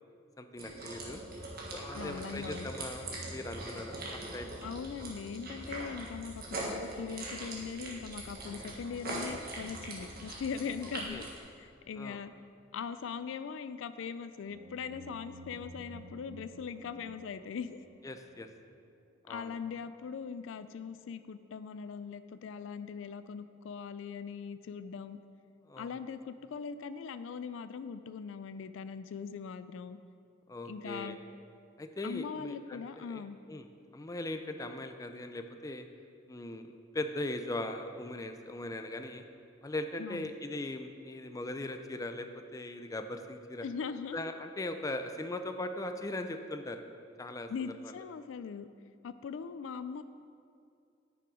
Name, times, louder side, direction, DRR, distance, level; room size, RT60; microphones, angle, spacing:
voice 1, 0.4-1.2 1.7-4.6 11.1-11.3 12.0-12.2 18.0-18.5 19.2-19.6 25.7-25.9 30.5-31.2 31.8-33.2 33.5-33.7 33.9-35.9 36.3-39.2 39.6-43.6 44.1-46.8 47.2-47.9, left 1 dB, 20° left, 7 dB, 0.4 m, -39 dB
sound 1, 0.6-11.4, right 2 dB, 50° right, 1.5 m, -42 dB
voice 2, 1.9-2.7 4.6-11.3 11.6-12.3 12.7-17.8 19.3-25.2 25.8-30.0 30.6-31.2 32.0-33.4 40.0-40.3 43.6-44.2 47.5-48.7 49.0-50.0, left 6 dB, 80° left, 12 dB, 0.4 m, -40 dB
sound 2, 14.4-19.0, right 1 dB, 85° right, 0.6 m, -52 dB
9.8 x 6.0 x 4.9 m, 2.4 s
head